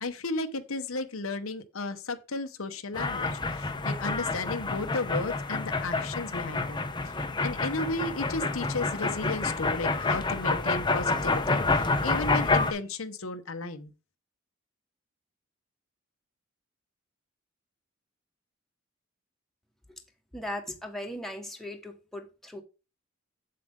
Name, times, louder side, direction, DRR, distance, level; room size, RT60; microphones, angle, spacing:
voice 1, 0.0-13.9, left 3 dB, 80° left, 1.0 m, -34 dB
sound 1, 2.9-12.7, left 3 dB, 20° left, 0.8 m, -28 dB
voice 2, 20.3-22.6, left 1 dB, ahead, 1.4 m, -38 dB
7.6 x 7.6 x 3.6 m
head